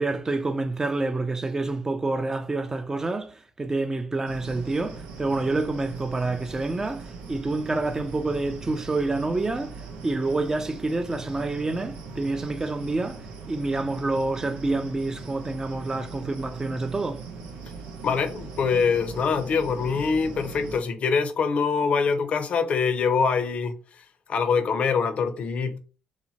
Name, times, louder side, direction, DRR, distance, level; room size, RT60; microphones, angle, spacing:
voice 1, 0.0-17.2, right 2 dB, 20° right, 0.4 m, -28 dB
sound 1, 4.3-20.8, right 4 dB, 90° right, 0.5 m, -40 dB
voice 2, 18.0-25.8, left 5 dB, 55° left, 0.5 m, -24 dB
2.8 x 2.1 x 2.7 m
cardioid pair, 80°, 3 cm